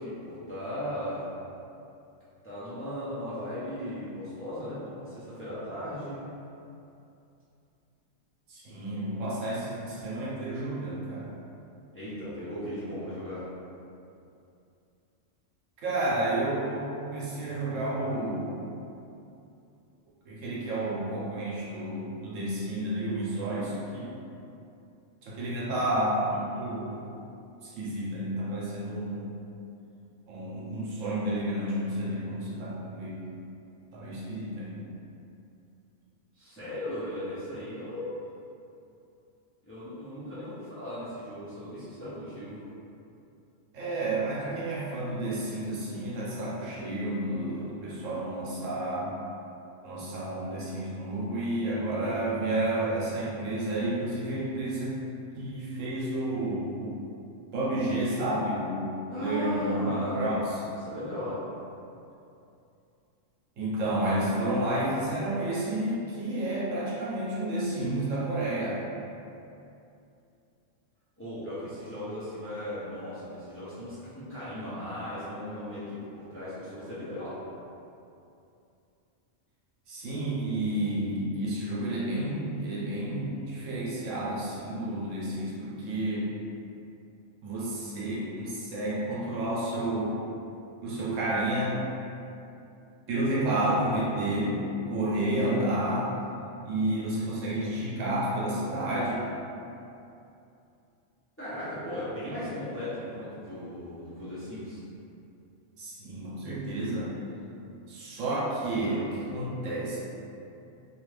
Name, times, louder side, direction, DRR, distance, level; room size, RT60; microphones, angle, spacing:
voice 1, 0.0-1.3 2.4-6.3 11.9-13.5 36.3-38.2 39.6-42.6 59.1-60.4 60.8-61.4 71.2-77.4 101.4-104.8, equal, 15° left, -13 dB, 0.6 m, -37 dB
voice 2, 8.5-11.3 15.8-18.6 20.3-24.1 25.2-27.0 27.6-29.3 30.3-33.3 33.9-34.9 43.7-49.1 49.8-55.0 55.4-57.0 57.5-58.8 59.1-60.6 63.6-68.8 79.9-86.3 87.4-90.2 90.8-91.8 93.1-94.6 94.9-96.1 96.6-99.3 105.8-107.1 107.9-110.0, right 1 dB, 80° right, -6 dB, 1.1 m, -30 dB
2.7 x 2.4 x 3.2 m, 2.7 s
omnidirectional pair, 1.3 m